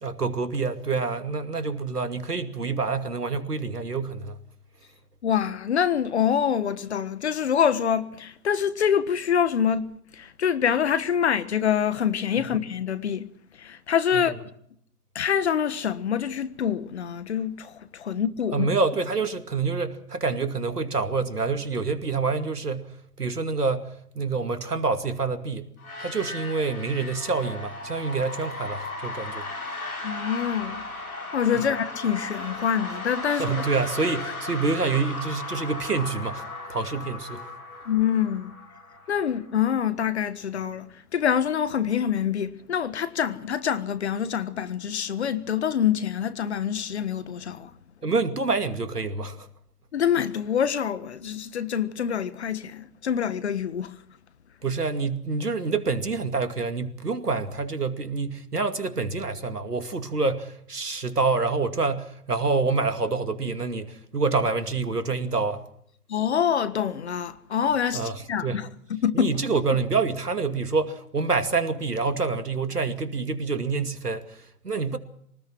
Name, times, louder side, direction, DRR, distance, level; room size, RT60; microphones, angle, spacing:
voice 1, 0.0-4.4 14.1-14.2 18.5-25.7 26.0-29.5 31.5-31.6 33.3-36.4 36.7-37.5 48.0-49.5 54.6-65.6 67.9-68.1 68.4-68.6 69.1-75.0, right 4 dB, 80° right, 2.6 m, -27 dB
voice 2, 5.2-13.3 13.5-14.3 15.1-18.7 30.0-30.8 31.3-33.6 37.8-38.5 39.1-47.7 49.9-54.0 66.1-69.4, left 8 dB, 45° left, 1.5 m, -26 dB
sound 1, 25.8-39.5, left 2 dB, 65° left, 6.8 m, -36 dB
24.0 x 19.0 x 6.1 m
figure-of-eight pair, 135°, 46 cm